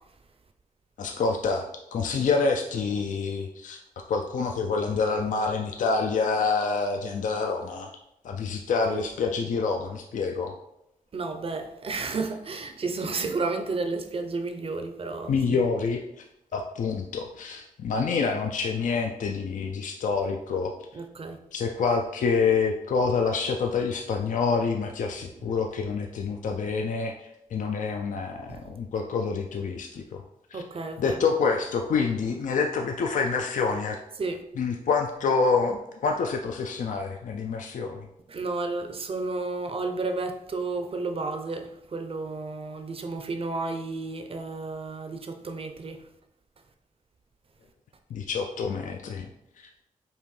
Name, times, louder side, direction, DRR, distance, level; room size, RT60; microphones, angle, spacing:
voice 1, 1.0-3.8 4.1-7.9 8.2-10.5 15.3-16.2 16.5-20.7 21.5-27.1 27.5-30.2 30.5-30.6 31.0-34.0 34.6-38.1 48.1-49.3 49.6-49.7, left 4 dB, 65° left, 0.4 m, -27 dB
voice 2, 11.1-15.6 20.9-21.4 25.5-25.6 28.5-28.6 30.5-31.2 34.2-34.4 38.3-46.0, right 3 dB, 40° right, 0.5 m, -32 dB
5.4 x 2.5 x 3.2 m
cardioid pair, 90°, 14 cm